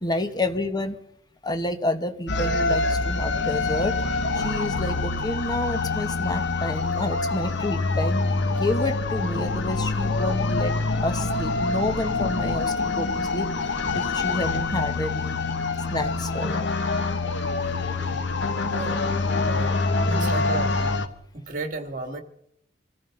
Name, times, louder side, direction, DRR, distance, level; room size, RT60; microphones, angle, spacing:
voice 1, 0.0-1.0 1.4-4.0 4.3-10.7 11.0-13.5 13.9-15.4 15.9-16.7 20.1-20.5, left 1 dB, 20° left, 8 dB, 1.3 m, -29 dB
sound 1, 2.3-21.1, left 3 dB, 65° left, 1.3 m, -25 dB
voice 2, 18.7-19.1 19.3-19.7 20.1-20.9 21.3-22.2, right 3 dB, 45° right, 6 dB, 2.3 m, -34 dB
25.5 x 14.5 x 3.9 m, 0.72 s
head